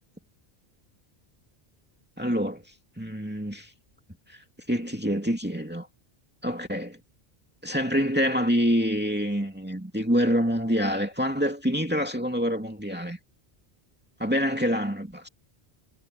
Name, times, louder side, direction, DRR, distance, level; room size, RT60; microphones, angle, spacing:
voice 1, 2.2-2.6 3.0-3.7 4.3-4.4 4.7-5.9 6.4-7.0 7.6-13.2 14.2-15.3, equal, 10° right, 2.5 m, -26 dB
omnidirectional pair, 1.1 m